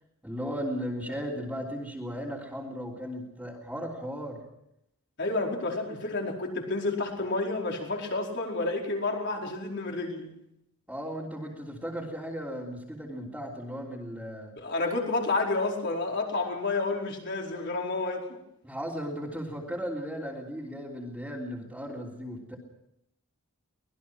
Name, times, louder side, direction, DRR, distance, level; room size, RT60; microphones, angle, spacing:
voice 1, 0.2-4.4 10.9-14.5 18.6-22.6, equal, 5° right, -6 dB, 3.3 m, -36 dB
voice 2, 5.2-10.3 14.6-18.4, left 3 dB, 50° left, 0 dB, 4.8 m, -30 dB
25.0 x 20.0 x 6.1 m, 0.79 s
head